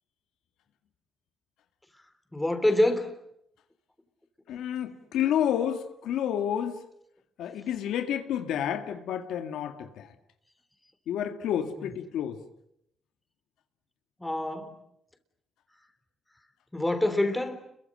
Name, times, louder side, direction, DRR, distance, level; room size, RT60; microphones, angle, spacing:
voice 1, 2.3-3.2 11.8-11.9 14.2-14.8 16.7-17.6, left 1 dB, 10° left, 3.5 m, -26 dB
voice 2, 4.5-6.8 7.4-10.1 11.1-12.4, left 9 dB, 80° left, 2.1 m, -30 dB
30.0 x 23.0 x 7.7 m
cardioid pair, 90°, 0 cm